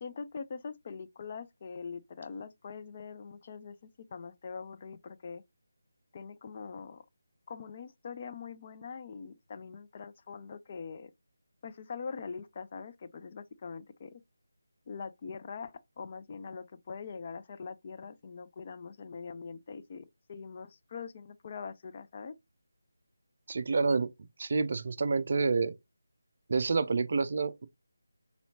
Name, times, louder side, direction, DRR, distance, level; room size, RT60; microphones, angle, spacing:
voice 1, 0.0-5.4 6.1-7.1 7.5-11.1 11.6-14.2 14.9-22.3, left 5 dB, 30° left, 0.3 m, -43 dB
voice 2, 23.5-24.1 24.4-25.7 26.5-27.7, right 4 dB, 45° right, 0.3 m, -28 dB
4.1 x 2.7 x 2.7 m
figure-of-eight pair, 160°, 0 cm